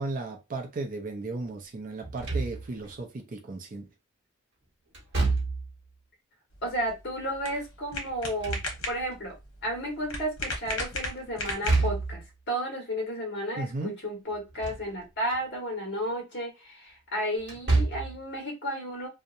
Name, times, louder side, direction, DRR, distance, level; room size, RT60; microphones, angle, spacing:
voice 1, 0.0-3.9 13.6-13.9, right 2 dB, 40° right, 0.5 m, -35 dB
Slam / Thump thud, 2.0-2.9 4.9-5.8 8.1-9.1 11.5-12.3 14.3-14.9 15.3-15.4 17.4-18.2, right 3 dB, 55° right, 0.9 m, -28 dB
sound 1, 6.5-12.1, left 2 dB, 80° left, 0.9 m, -37 dB
voice 2, 6.6-8.6 8.9-9.3 9.6-19.1, equal, 50° left, 1.3 m, -33 dB
2.7 x 2.1 x 2.5 m
head